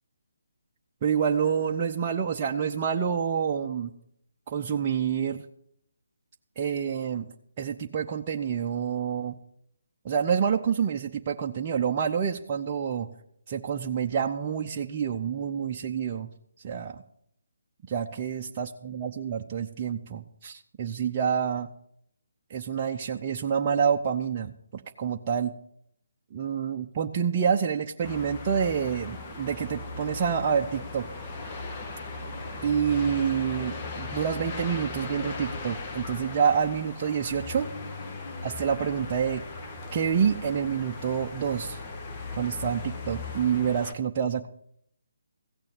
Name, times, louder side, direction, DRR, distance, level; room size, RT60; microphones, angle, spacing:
voice 1, 1.0-3.9 4.5-5.4 6.6-7.3 7.6-9.3 10.0-13.1 13.5-16.3 16.6-17.0 17.9-21.7 22.5-25.5 26.3-31.1 32.6-37.7 38.4-39.4 39.9-41.8 42.3-44.5, right 7 dB, 30° right, 2 dB, 0.7 m, -28 dB
sound 1, 28.0-43.9, left 3 dB, 30° left, 1.5 m, -38 dB
16.0 x 6.8 x 7.7 m, 0.69 s
figure-of-eight pair, 150°, 0 cm